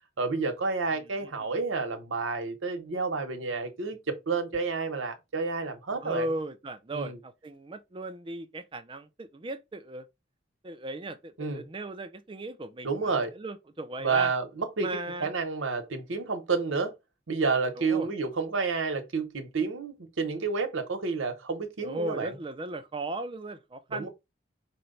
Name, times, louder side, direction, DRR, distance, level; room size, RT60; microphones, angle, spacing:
voice 1, 0.2-6.3 6.9-7.2 11.4-11.6 12.8-13.3 14.0-14.9 15.2-16.9 17.3-22.3 23.9-24.1, right 4 dB, 85° right, 1.0 m, -30 dB
voice 2, 1.0-1.5 6.0-10.0 10.6-14.3 14.8-15.3 17.8-18.1 21.8-24.1, right 2 dB, 25° right, 0.4 m, -37 dB
4.3 x 2.2 x 3.8 m
head